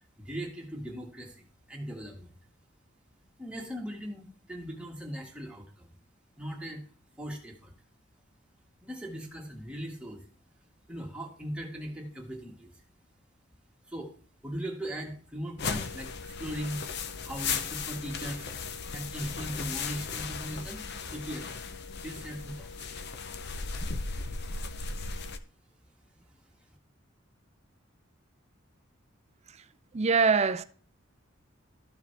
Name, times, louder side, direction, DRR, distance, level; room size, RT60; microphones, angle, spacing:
voice 1, 0.2-2.3 3.4-5.9 6.4-6.8 7.2-7.7 8.8-10.2 10.9-12.7 13.9-14.1 14.4-16.9 17.2-18.5 18.9-20.9 21.1-21.5 22.0-22.9, equal, 5° right, 1.6 m, -39 dB
sound 1, 15.6-25.4, left 5 dB, 55° left, 0.6 m, -36 dB
voice 2, 29.9-30.6, right 5 dB, 35° right, 0.5 m, -23 dB
13.5 x 4.8 x 3.4 m
head